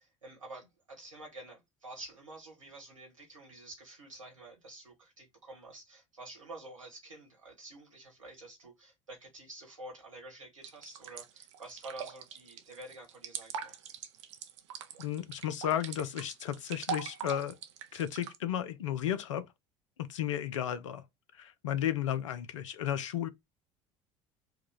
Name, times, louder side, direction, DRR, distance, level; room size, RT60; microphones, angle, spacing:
voice 1, 0.0-13.7, right 2 dB, 85° right, 1.7 m, -49 dB
sound 1, 10.6-18.4, right 8 dB, 65° right, 0.6 m, -42 dB
voice 2, 15.0-17.5 17.9-19.4 20.0-21.0 21.4-23.3, left 10 dB, 75° left, 0.6 m, -33 dB
4.6 x 2.3 x 3.6 m
figure-of-eight pair, 65°, 16 cm